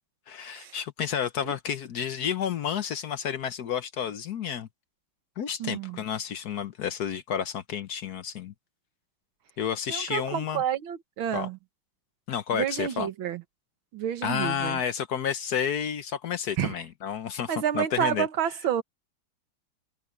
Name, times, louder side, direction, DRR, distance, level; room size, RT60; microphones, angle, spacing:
voice 1, 0.3-4.7 5.4-8.5 9.6-10.6 11.3-11.5 12.3-13.1 14.2-18.3, left 8 dB, 60° left, 1.2 m, -31 dB
voice 2, 5.6-6.0 9.9-11.6 12.5-13.4 13.9-14.8 16.6-16.8 17.5-18.8, right 10 dB, 80° right, 2.0 m, -29 dB
omnidirectional pair, 2.2 m